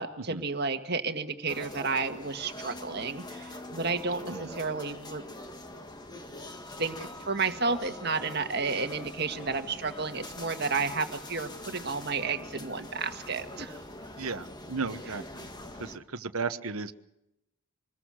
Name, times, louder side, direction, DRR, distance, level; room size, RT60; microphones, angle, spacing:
voice 1, 0.0-5.2 6.8-13.8, right 4 dB, 50° right, 7 dB, 1.8 m, -32 dB
sound 1, 1.5-16.0, left 1 dB, 20° left, 1.7 m, -43 dB
voice 2, 14.2-15.5 15.8-16.9, right 4 dB, 85° right, 11 dB, 1.2 m, -35 dB
25.5 x 21.0 x 6.4 m, 0.87 s
head